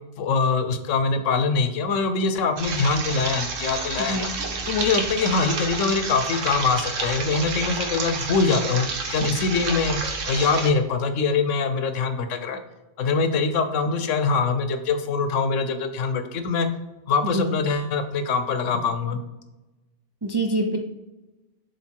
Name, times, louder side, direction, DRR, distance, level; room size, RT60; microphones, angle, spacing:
voice 1, 0.2-4.3 4.6-10.0 10.3-12.6 13.0-16.7 17.1-19.2, left 4 dB, 80° left, 8 dB, 1.1 m, -23 dB
sound 1, 2.6-10.7, right 4 dB, 80° right, 1.3 m, -30 dB
voice 2, 4.0-4.4 17.2-17.5 20.2-20.8, right 1 dB, 35° right, 1 dB, 0.4 m, -26 dB
7.3 x 3.5 x 4.5 m, 1.1 s
omnidirectional pair, 1.3 m